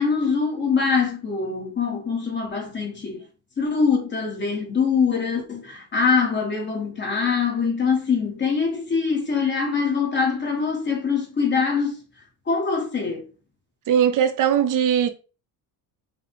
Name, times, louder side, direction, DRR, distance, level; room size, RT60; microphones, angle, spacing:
voice 1, 0.0-3.2 3.6-12.0 12.5-13.3, left 5 dB, 25° left, 1.5 m, -23 dB
voice 2, 13.9-15.1, right 9 dB, 50° right, 0.8 m, -19 dB
5.7 x 2.3 x 3.7 m
cardioid pair, 135°, 39 cm